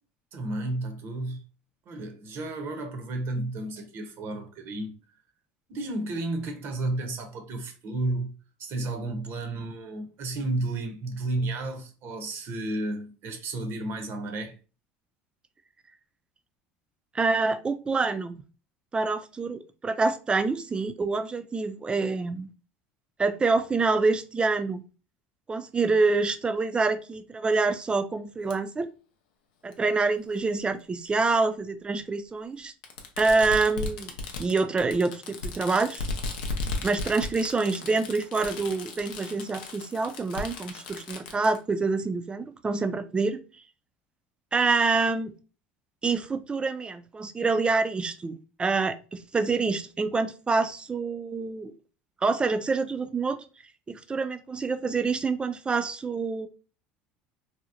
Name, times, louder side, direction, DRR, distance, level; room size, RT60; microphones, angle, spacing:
voice 1, 0.3-1.4 1.9-5.0 5.7-8.3 8.6-14.5, right 2 dB, 55° right, 0.7 m, -32 dB
voice 2, 17.1-18.4 18.9-22.5 23.2-24.8 25.5-28.9 29.6-32.7 33.2-34.1 34.4-36.1 36.8-43.4 44.5-45.3 46.0-51.7 52.2-53.4 53.9-56.5, right 4 dB, 20° right, 0.3 m, -26 dB
Fireworks, 28.5-28.6 29.7-29.8 31.1-31.2 32.8-41.6, left 3 dB, 85° left, 0.5 m, -36 dB
2.7 x 2.0 x 2.4 m
supercardioid pair, 90°, 5 cm